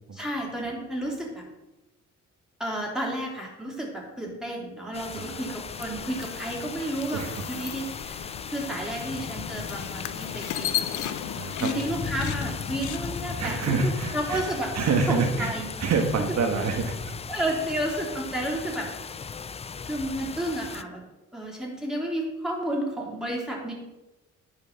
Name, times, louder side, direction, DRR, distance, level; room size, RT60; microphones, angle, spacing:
voice 1, 0.1-1.4 2.6-11.2 11.6-13.6 13.8-14.7 15.1-15.7 17.3-18.9 19.8-21.0 21.3-23.7, right 1 dB, ahead, -2 dB, 3.4 m, -31 dB
sound 1, 4.9-20.8, left 6 dB, 20° left, 0.4 m, -37 dB
sound 2, 5.7-13.4, left 11 dB, 75° left, 0.7 m, -36 dB
voice 2, 7.1-7.4 11.4-11.7 13.4-14.4 14.7-15.5 15.8-17.0, right 4 dB, 60° right, 3 dB, 1.4 m, -26 dB
10.0 x 5.1 x 6.6 m, 1.0 s
cardioid pair, 90°, 30 cm